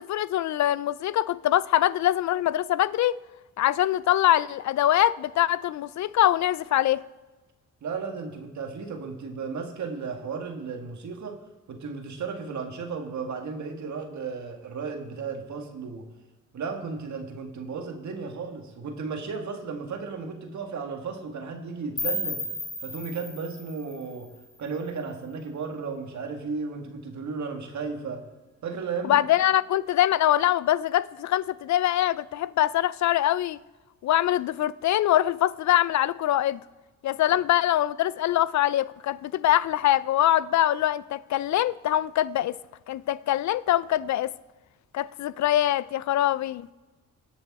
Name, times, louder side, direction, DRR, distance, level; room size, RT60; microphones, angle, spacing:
voice 1, 0.0-3.1 3.6-7.0 29.0-33.6 34.0-36.6 37.0-42.5 42.9-44.3 44.9-46.7, left 13 dB, 65° left, 0.4 m, -23 dB
voice 2, 7.8-11.4 11.7-16.1 16.5-22.4 22.8-24.3 24.6-28.2 28.6-29.3, right 5 dB, 65° right, 1.9 m, -34 dB
sound 1, 22.0-24.9, left 1 dB, 10° left, 2.3 m, -34 dB
20.5 x 7.0 x 4.2 m
cardioid pair, 75°, 31 cm